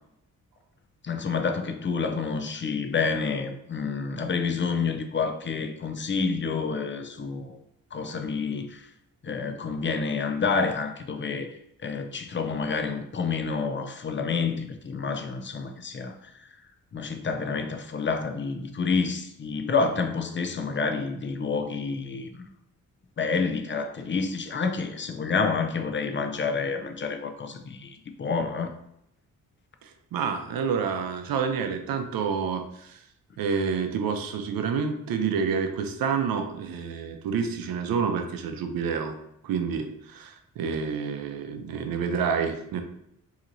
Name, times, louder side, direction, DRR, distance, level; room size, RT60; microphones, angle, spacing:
voice 1, 1.0-7.6 7.9-8.9 9.2-11.5 11.8-16.2 16.9-22.4 23.2-28.7, left 5 dB, 35° left, 6 dB, 0.5 m, -28 dB
voice 2, 29.8-33.0 33.4-39.2 39.4-42.8, right 6 dB, 85° right, 6 dB, 0.6 m, -28 dB
4.2 x 2.8 x 2.6 m, 0.78 s
cardioid pair, 80°, 34 cm